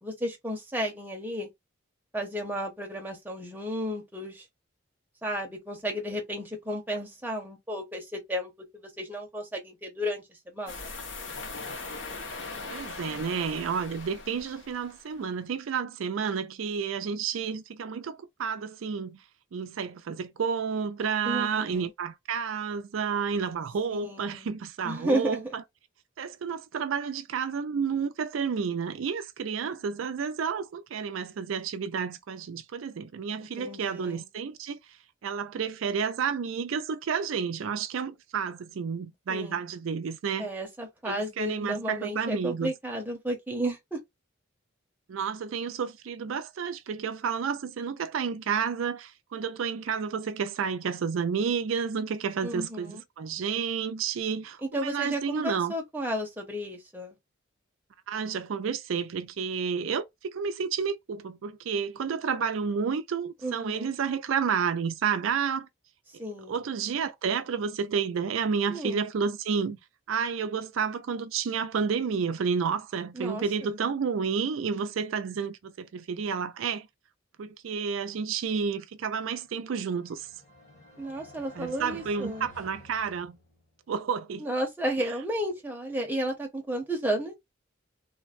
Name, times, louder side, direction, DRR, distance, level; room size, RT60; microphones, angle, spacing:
voice 1, 0.0-1.5 2.1-4.5 5.2-10.9 21.2-21.9 23.9-24.5 24.8-25.4 33.4-34.3 39.3-39.6 40.4-44.0 52.4-53.0 54.6-57.2 63.4-63.9 66.2-66.6 68.7-69.0 73.1-73.7 81.0-82.5 84.4-87.3, right 1 dB, 10° right, 0.8 m, -33 dB
sound 1, 10.7-15.1, left 3 dB, 70° left, 1.0 m, -40 dB
voice 2, 12.7-19.2 19.5-25.6 26.2-34.8 35.2-40.5 41.1-42.7 45.1-55.7 58.1-65.7 66.1-69.8 70.1-76.9 77.4-80.3 81.6-83.4 83.9-84.5, right 6 dB, 80° right, 0.4 m, -30 dB
sound 2, 79.4-83.8, left 1 dB, 35° left, 1.3 m, -52 dB
3.2 x 2.2 x 2.4 m
head